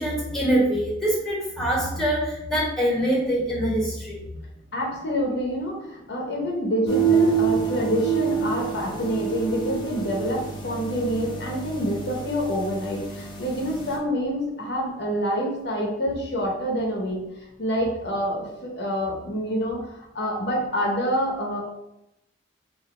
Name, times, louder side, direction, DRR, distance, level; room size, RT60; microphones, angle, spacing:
voice 1, 0.0-4.4, right 1 dB, ahead, -6 dB, 1.3 m, -24 dB
voice 2, 4.7-17.2 17.6-21.6, equal, 60° left, -1 dB, 0.9 m, -27 dB
sound 1, 6.9-14.0, right 6 dB, 25° left, 0.8 m, -27 dB
4.0 x 2.6 x 4.3 m, 0.88 s
head